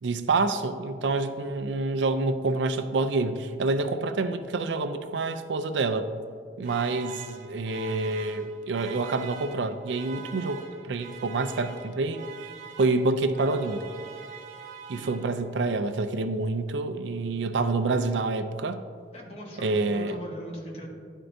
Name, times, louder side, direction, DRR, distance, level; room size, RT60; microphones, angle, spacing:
voice 1, 0.0-6.1 6.6-12.2 12.8-13.8 14.9-18.8 19.6-20.2, right 3 dB, 85° right, 9 dB, 0.4 m, -27 dB
sound 1, 6.6-15.6, right 7 dB, 45° right, 0.7 m, -44 dB
voice 2, 14.8-15.4 19.1-20.9, equal, 35° left, -2 dB, 1.3 m, -41 dB
11.0 x 4.5 x 2.6 m, 2.1 s
head